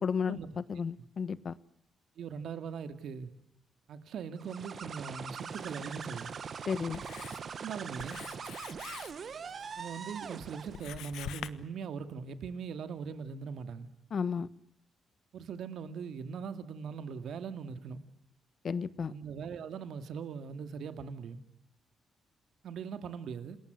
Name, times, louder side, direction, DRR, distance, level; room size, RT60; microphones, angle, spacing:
voice 1, 0.0-1.6 6.7-7.0 14.1-14.5 18.6-19.1, left 6 dB, 50° left, 1.1 m, -33 dB
voice 2, 2.2-3.3 3.9-6.3 7.6-8.2 9.8-13.9 15.3-18.0 19.1-21.4 22.6-23.6, right 6 dB, 70° right, 2.4 m, -40 dB
sound 1, 4.4-10.9, right 6 dB, 50° right, 1.6 m, -42 dB
Writing, 5.3-11.5, left 11 dB, 90° left, 1.3 m, -48 dB
28.5 x 21.0 x 7.9 m
cardioid pair, 100°, 0 cm